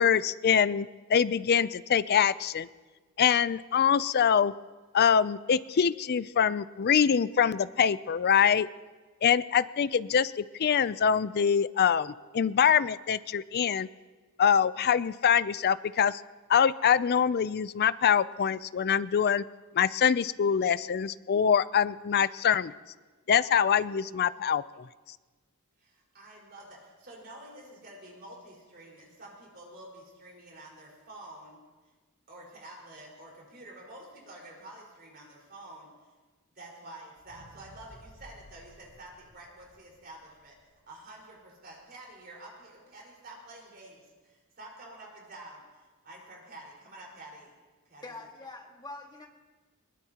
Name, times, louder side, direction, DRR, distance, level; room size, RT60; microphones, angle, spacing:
voice 1, 0.0-2.7 3.2-4.5 4.9-8.7 9.2-13.9 14.4-16.2 16.5-19.4 19.7-22.7 23.3-24.9, left 7 dB, 45° left, 17 dB, 0.4 m, -24 dB
voice 2, 25.8-31.6 32.3-35.9 36.5-40.6 40.8-47.5 47.9-48.1, right 1 dB, 45° right, -2 dB, 4.8 m, -49 dB
sound 1, 37.2-41.4 41.9-42.0, equal, 80° right, 4.4 m, -56 dB
voice 3, 48.0-49.3, left 2 dB, 20° left, 1 dB, 1.8 m, -44 dB
21.5 x 20.5 x 2.9 m, 1.3 s
head